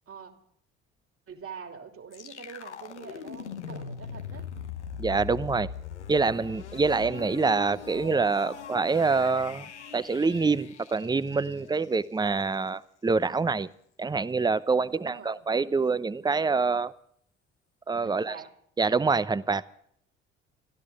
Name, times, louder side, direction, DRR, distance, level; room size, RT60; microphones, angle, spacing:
voice 1, 1.3-4.5 14.9-15.5 18.0-18.5, right 6 dB, 40° right, 2.9 m, -44 dB
sound 1, 2.1-12.0, left 7 dB, 90° left, 1.0 m, -41 dB
voice 2, 5.0-5.7 6.1-9.7 9.9-13.7 14.0-16.9 17.9-18.4 18.8-19.6, right 4 dB, 10° right, 0.7 m, -26 dB
24.5 x 13.5 x 3.6 m
figure-of-eight pair, 50°, 34 cm